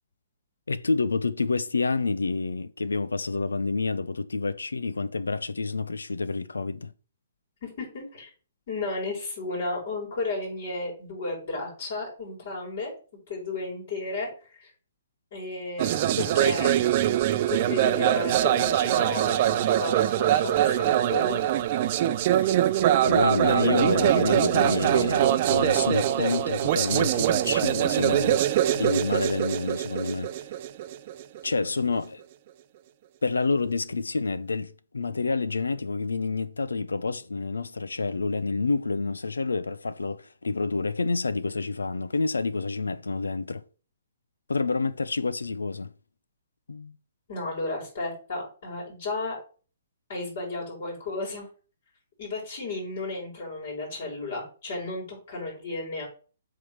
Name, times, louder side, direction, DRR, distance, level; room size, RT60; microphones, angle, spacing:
voice 1, 0.7-6.9 23.0-28.4 28.8-30.3 31.4-32.2 33.2-43.6 44.5-45.9 46.7-47.0, left 3 dB, 85° left, 0.6 m, -28 dB
voice 2, 7.6-8.3 8.7-12.9 13.3-14.7 15.3-16.8 17.1-21.4 47.3-49.4 50.1-51.5 52.2-56.0, left 2 dB, 55° left, 4.8 m, -33 dB
sound 1, 15.8-31.6, right 12 dB, 45° right, 0.6 m, -23 dB
7.6 x 3.8 x 6.4 m
hypercardioid pair, 130°, 0 cm